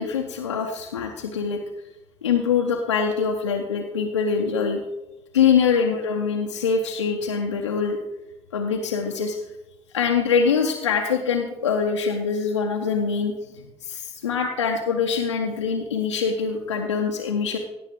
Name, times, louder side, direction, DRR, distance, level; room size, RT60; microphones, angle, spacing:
voice 1, 0.0-1.6 2.2-4.8 5.3-8.0 8.5-9.4 9.9-17.6, left 6 dB, 90° left, 1 dB, 0.6 m, -24 dB
16.0 x 6.8 x 3.7 m, 0.99 s
figure-of-eight pair, 45°, 15 cm